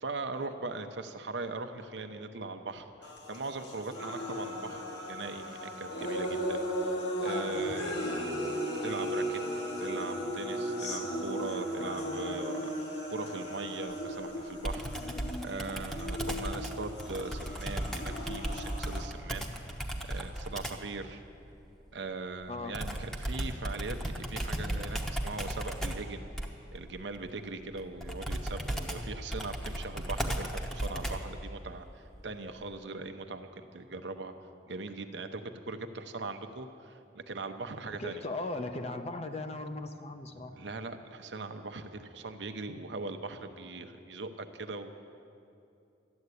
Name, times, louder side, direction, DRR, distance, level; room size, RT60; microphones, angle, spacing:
voice 1, 0.0-4.8 5.1-8.4 8.7-9.4 9.8-19.8 20.0-21.2 21.9-26.3 26.7-34.3 34.7-38.2 40.5-44.9, right 3 dB, 70° right, 7 dB, 0.8 m, -40 dB
sound 1, 3.0-19.0, equal, 65° left, 1.8 m, -36 dB
Computer keyboard, 14.6-20.9 22.7-31.4, right 1 dB, 5° left, 0.9 m, -36 dB
voice 2, 37.9-40.6, left 2 dB, 35° left, 7 dB, 0.7 m, -38 dB
13.0 x 8.0 x 9.7 m, 2.6 s
head